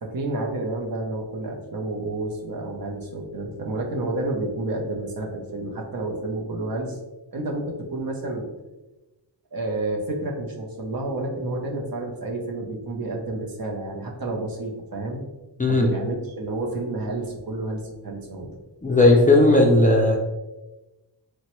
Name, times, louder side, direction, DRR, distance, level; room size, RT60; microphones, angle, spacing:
voice 1, 0.0-7.0 7.3-8.5 9.5-15.2 15.7-18.5, right 2 dB, 55° right, 0 dB, 0.7 m, -30 dB
voice 2, 18.8-20.2, left 2 dB, 20° left, -1 dB, 0.4 m, -16 dB
3.0 x 2.2 x 2.9 m, 1.0 s
wide cardioid pair, 70°, 43 cm